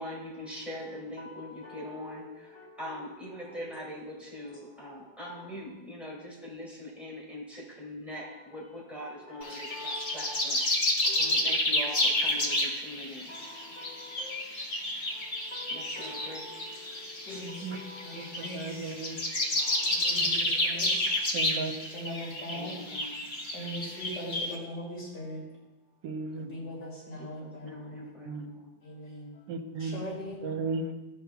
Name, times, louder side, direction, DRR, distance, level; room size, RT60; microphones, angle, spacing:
voice 1, 0.0-10.7 11.2-13.3 15.7-16.6 17.3-17.5 22.5-23.3 27.2-28.7, left 1 dB, ahead, -6 dB, 2.5 m, -42 dB
voice 2, 1.2-3.6 4.4-5.7 8.2-8.4 8.9-10.5 10.9-12.6 13.3-21.2 21.9-22.8 23.5-25.4 26.4-28.2 28.8-29.4 29.8-30.6, left 1 dB, 60° left, -6 dB, 3.6 m, -43 dB
sound 1, 9.4-24.6, left 1 dB, 45° left, 0.6 m, -30 dB
voice 3, 18.1-19.2 20.2-20.3 21.3-21.7 26.0-26.5 28.2-28.5 29.5-30.0 30.4-30.8, right 4 dB, 70° right, 5 dB, 1.4 m, -35 dB
12.5 x 5.4 x 2.3 m, 1.0 s
omnidirectional pair, 2.1 m